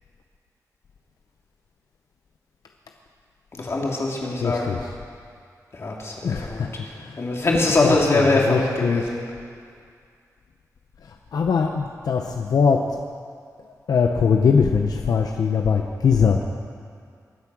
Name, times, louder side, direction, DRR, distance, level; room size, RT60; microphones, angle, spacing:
voice 1, 3.5-4.7 5.7-6.6 7.2-9.2, left 2 dB, 45° left, -2 dB, 2.5 m, -22 dB
voice 2, 4.4-4.9 6.2-7.2 7.8-9.1 11.0-12.9 13.9-16.5, left 6 dB, 80° left, 3 dB, 0.7 m, -22 dB
23.0 x 8.4 x 6.1 m, 2.2 s
wide cardioid pair, 155°, 6 cm